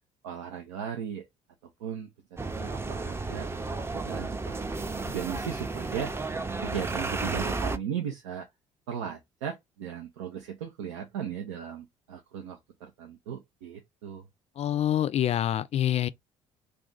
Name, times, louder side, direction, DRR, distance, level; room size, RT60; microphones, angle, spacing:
voice 1, 0.2-1.3 1.8-2.1 2.6-4.6 5.0-6.1 6.6-8.5 8.9-14.2, right 8 dB, 90° right, 0.5 m, -37 dB
sound 1, 2.4-7.8, right 3 dB, 15° right, 0.5 m, -33 dB
voice 2, 14.6-16.1, left 11 dB, 45° left, 0.4 m, -26 dB
2.4 x 2.3 x 3.8 m
hypercardioid pair, 60°, 15 cm